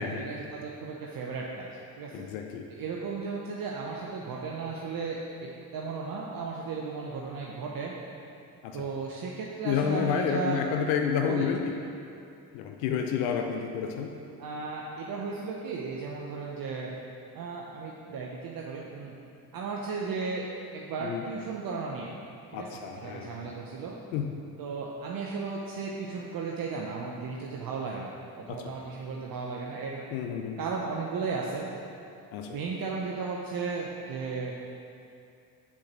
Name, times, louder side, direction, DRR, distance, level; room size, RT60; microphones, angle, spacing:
voice 1, 0.0-1.7 2.0-2.3 2.7-7.9 8.7-10.6 11.3-11.5 14.4-16.9 17.3-19.2 19.5-20.5 20.7-22.1 22.5-24.0 24.6-30.0 30.6-31.7 32.4-34.6, right 4 dB, 45° right, -2 dB, 0.8 m, -35 dB
voice 2, 2.1-2.6 8.6-8.9 9.6-11.7 12.5-14.1 21.0-21.2 22.5-23.4 24.1-24.3 28.5-28.6 30.1-30.6 32.3-32.6, left 7 dB, 65° left, 3 dB, 0.7 m, -30 dB
7.3 x 4.5 x 6.1 m, 2.6 s
figure-of-eight pair, 40°, 50 cm